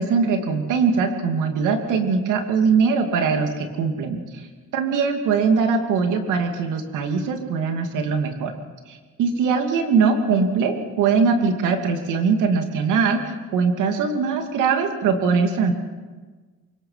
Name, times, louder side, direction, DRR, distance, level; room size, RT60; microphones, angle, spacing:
voice 1, 0.0-4.5 4.7-8.5 8.9-15.7, right 5 dB, 90° right, 5 dB, 2.7 m, -21 dB
24.5 x 22.5 x 5.8 m, 1.4 s
cardioid pair, 90°, 30 cm